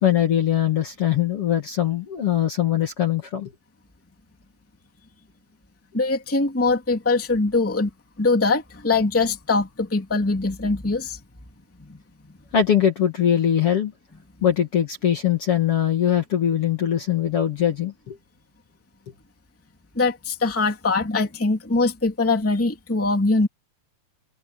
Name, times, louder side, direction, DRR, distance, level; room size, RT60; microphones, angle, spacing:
voice 1, 0.0-3.5 12.5-13.9 14.4-18.2, left 10 dB, 45° left, 2.3 m, -21 dB
voice 2, 5.9-7.9 8.2-11.2 11.8-12.0 20.0-23.5, left 3 dB, 5° left, 1.9 m, -22 dB
omnidirectional pair, 4.3 m